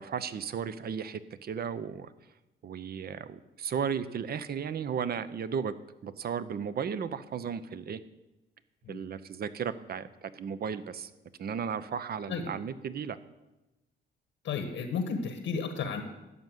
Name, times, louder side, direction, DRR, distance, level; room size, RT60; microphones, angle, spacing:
voice 1, 0.0-2.1 2.6-5.8 6.0-8.0 8.9-11.1 11.4-13.2, right 7 dB, 50° right, 14 dB, 0.7 m, -35 dB
voice 2, 14.4-16.0, left 5 dB, 80° left, 7 dB, 1.3 m, -33 dB
12.5 x 5.5 x 7.9 m, 1.0 s
cardioid pair, 90°, 20 cm